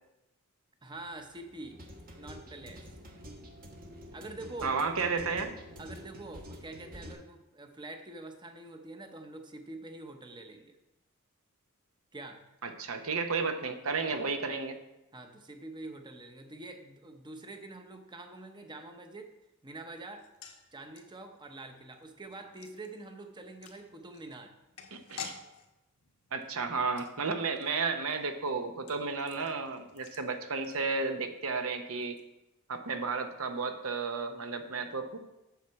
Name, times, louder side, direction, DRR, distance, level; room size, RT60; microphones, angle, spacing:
voice 1, 0.8-1.8 2.2-2.8 4.1-4.7 5.8-10.8 12.1-12.4 14.1-14.2 15.1-19.3 19.6-20.2 20.7-24.5, right 2 dB, 20° right, 5 dB, 0.8 m, -45 dB
sound 1, 1.0-7.1, equal, 40° right, 1.2 m, -48 dB
voice 2, 4.6-5.5 12.6-14.8 24.9-25.3 26.3-32.2 32.7-35.2, right 4 dB, 65° right, 7 dB, 0.9 m, -33 dB
sound 2, 20.1-31.4 31.6-31.7 32.0-32.2, left 7 dB, 80° left, 1.1 m, -51 dB
8.2 x 6.9 x 4.6 m, 0.93 s
head